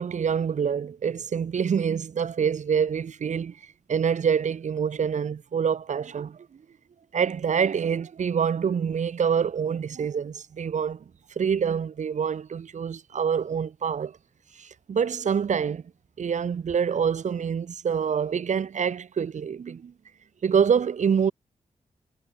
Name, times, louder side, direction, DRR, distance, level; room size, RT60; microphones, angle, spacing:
voice 1, 0.0-3.6 3.9-6.4 7.1-11.0 11.4-14.2 14.6-15.8 16.2-19.9 20.4-21.3, right 7 dB, 80° right, 5.7 m, -26 dB
wide cardioid pair, 85°, 12 cm